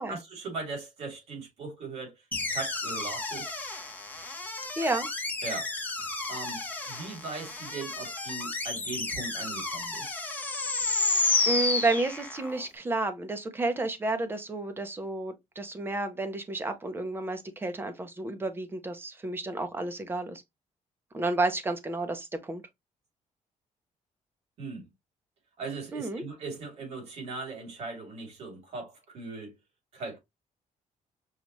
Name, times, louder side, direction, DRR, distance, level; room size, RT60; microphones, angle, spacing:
voice 1, 0.0-3.6 5.4-5.7 6.3-10.1 24.6-24.9 25.6-29.5 29.9-30.2, right 3 dB, 55° right, 2.8 m, -39 dB
sound 1, 2.3-12.6, left 3 dB, 15° left, 1.0 m, -31 dB
voice 2, 4.7-5.1 11.5-20.4 21.1-22.6 25.9-26.2, right 2 dB, 15° right, 0.7 m, -31 dB
5.5 x 2.4 x 3.1 m
cardioid pair, 180°, 13 cm